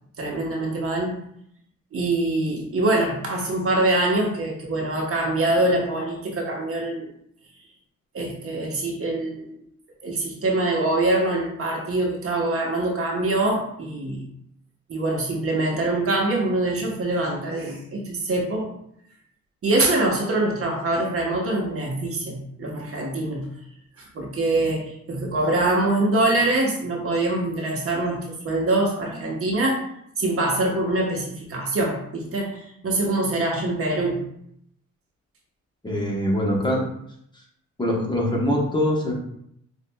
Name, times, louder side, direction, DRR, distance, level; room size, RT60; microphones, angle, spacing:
voice 1, 0.2-1.2 1.9-7.1 8.1-9.6 10.0-14.2 14.9-18.7 19.6-23.5 24.0-29.9 30.2-34.2, right 2 dB, 50° right, -1 dB, 1.0 m, -24 dB
voice 2, 35.8-36.8 37.8-39.1, left 1 dB, 15° left, -3 dB, 1.0 m, -23 dB
6.0 x 2.4 x 2.2 m, 0.71 s
cardioid pair, 90°, 30 cm